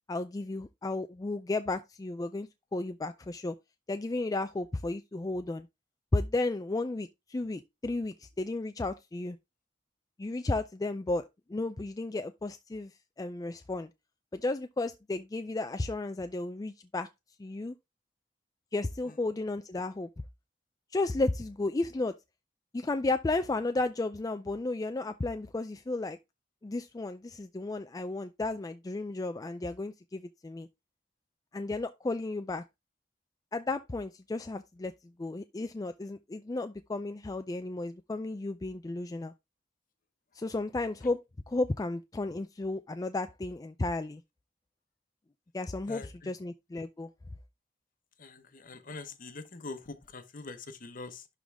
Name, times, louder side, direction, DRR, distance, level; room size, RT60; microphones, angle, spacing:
voice 1, 0.1-3.6 3.9-5.7 6.1-9.4 10.2-11.2 11.5-13.9 14.3-17.1 17.4-17.7 18.7-20.1 20.9-22.1 22.7-26.2 26.6-30.7 31.5-32.6 33.5-34.9 35.2-39.3 40.3-41.2 41.5-44.2 45.5-47.1, left 2 dB, 20° left, 0.4 m, -33 dB
voice 2, 45.9-46.3 48.2-51.3, left 3 dB, 50° left, 1.0 m, -44 dB
11.5 x 3.8 x 3.4 m
head